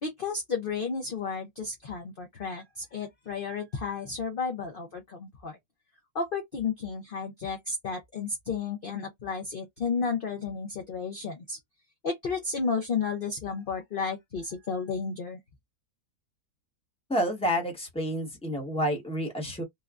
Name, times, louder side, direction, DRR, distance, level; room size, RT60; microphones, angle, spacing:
voice 1, 0.0-5.6 6.1-11.6 12.0-15.4, left 5 dB, 50° left, 0.7 m, -32 dB
voice 2, 17.1-19.6, equal, 5° left, 1.0 m, -29 dB
3.2 x 2.3 x 2.4 m
omnidirectional pair, 1.7 m